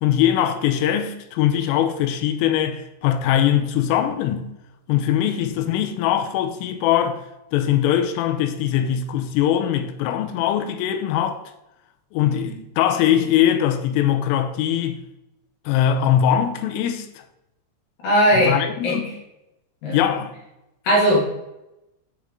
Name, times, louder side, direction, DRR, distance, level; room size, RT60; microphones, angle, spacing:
voice 1, 0.0-4.5 4.9-7.2 7.5-11.4 12.1-15.0 15.7-17.1 18.4-19.1 19.9-20.3, left 10 dB, 85° left, 3.3 m, -21 dB
voice 2, 18.0-18.6 18.8-19.0 19.8-20.0 20.8-21.3, equal, 55° left, 3.5 m, -18 dB
8.1 x 6.4 x 3.7 m
omnidirectional pair, 5.9 m